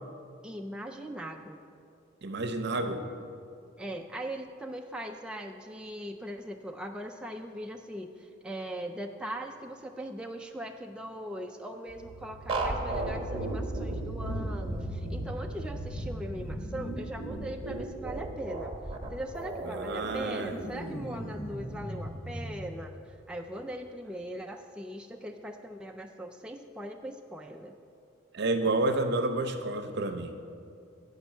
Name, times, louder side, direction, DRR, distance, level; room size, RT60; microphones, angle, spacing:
voice 1, 0.4-1.6 3.8-18.7 19.1-22.9 23.3-27.8, right 1 dB, 5° right, 2 dB, 0.3 m, -40 dB
voice 2, 2.2-3.0 19.7-20.6 28.3-30.3, right 2 dB, 60° right, 7 dB, 0.7 m, -30 dB
sound 1, 11.9-23.4, right 1 dB, 50° left, 1.2 m, -40 dB
sound 2, 12.5-22.7, right 2 dB, 30° right, 1.0 m, -36 dB
8.1 x 5.2 x 7.4 m, 2.5 s
head